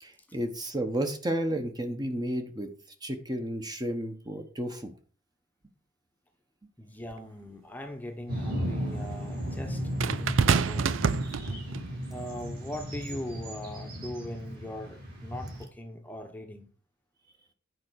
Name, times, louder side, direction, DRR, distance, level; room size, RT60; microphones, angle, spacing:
voice 1, 0.0-2.7 3.0-4.9, right 1 dB, 20° right, 1.1 m, -32 dB
voice 2, 6.8-9.8 10.2-11.0 12.1-16.7, left 1 dB, 10° left, 0.9 m, -40 dB
sound 1, 7.1-7.2 10.0-11.9 12.8-13.0, right 6 dB, 80° right, 0.5 m, -27 dB
sound 2, 8.3-15.6, equal, 50° right, 4.9 m, -35 dB
9.5 x 4.8 x 6.3 m
head